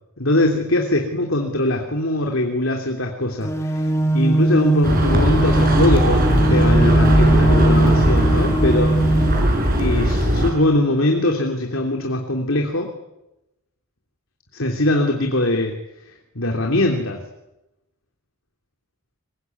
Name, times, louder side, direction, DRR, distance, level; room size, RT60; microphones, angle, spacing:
voice 1, 0.2-9.0 9.8-12.9 14.5-15.8 16.3-17.2, left 1 dB, 70° left, 3 dB, 3.1 m, -22 dB
sound 1, 3.4-9.4, right 2 dB, 15° left, 2.4 m, -19 dB
sound 2, 4.8-10.5, equal, 40° right, 6.5 m, -18 dB
24.0 x 22.5 x 9.6 m, 0.91 s
head